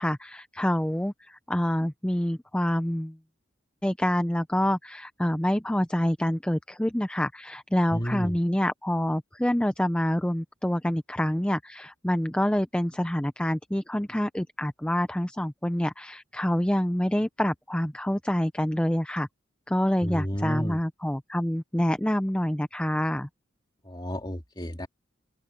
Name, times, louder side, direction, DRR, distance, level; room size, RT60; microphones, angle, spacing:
voice 1, 0.0-3.2 3.8-19.3 19.7-23.3, equal, 5° left, 0.5 m, -27 dB
voice 2, 7.9-8.4 20.0-20.8 23.9-24.9, equal, 20° left, 2.3 m, -31 dB
open air
head